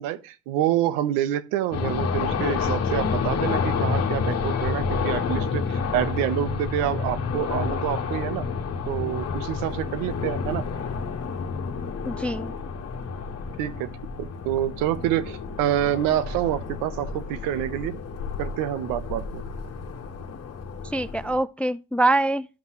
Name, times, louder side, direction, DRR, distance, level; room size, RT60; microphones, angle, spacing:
voice 1, 0.0-8.5 8.9-10.6 13.6-13.9 14.2-17.9 18.4-19.4, right 12 dB, 80° right, 1.0 m, -27 dB
sound 1, 1.7-21.4, left 5 dB, 45° left, 1.6 m, -29 dB
voice 2, 12.1-12.5 20.9-22.5, right 2 dB, 5° left, 0.3 m, -24 dB
13.0 x 5.7 x 3.1 m
supercardioid pair, 70°, 34 cm